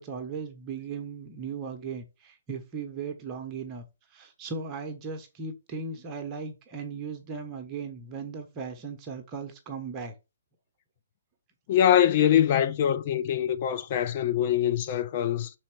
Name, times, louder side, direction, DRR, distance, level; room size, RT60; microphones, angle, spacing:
voice 1, 0.0-3.8 4.1-10.1, right 5 dB, 25° right, 1.1 m, -37 dB
voice 2, 11.7-15.5, left 10 dB, 35° left, 0.7 m, -23 dB
6.3 x 4.2 x 6.0 m
figure-of-eight pair, 130°, 0 cm